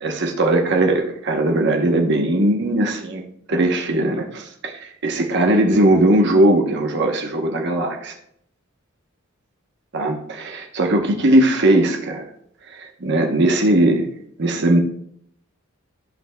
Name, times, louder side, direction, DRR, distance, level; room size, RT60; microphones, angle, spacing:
voice 1, 0.0-3.2 3.5-8.2 9.9-12.2 12.7-14.1 14.4-14.8, right 1 dB, 55° right, 3 dB, 0.9 m, -19 dB
14.0 x 5.6 x 2.2 m, 0.70 s
head